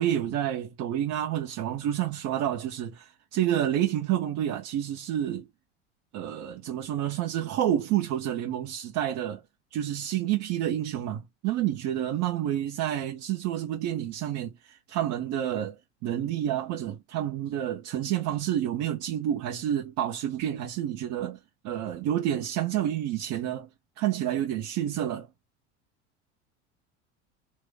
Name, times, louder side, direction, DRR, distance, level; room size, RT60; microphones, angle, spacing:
voice 1, 0.0-5.5 6.1-9.4 9.7-21.4 21.6-23.7 24.0-25.3, right 11 dB, 55° right, 1.2 m, -29 dB
3.0 x 2.1 x 3.4 m
hypercardioid pair, 75°, 34 cm